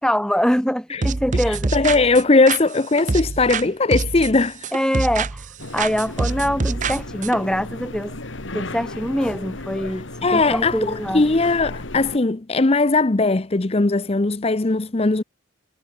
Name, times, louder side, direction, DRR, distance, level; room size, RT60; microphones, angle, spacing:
voice 1, 0.0-1.7 4.7-5.5 5.7-8.2 8.5-10.1 10.3-11.3, equal, 5° left, 2.6 m, -23 dB
sound 1, 1.0-3.7 3.9-5.5 5.8-7.4, right 3 dB, 40° right, 0.7 m, -25 dB
voice 2, 1.5-4.7 10.2-15.2, left 3 dB, 30° left, 0.7 m, -19 dB
sound 2, 5.6-12.2, left 2 dB, 80° left, 2.4 m, -34 dB
head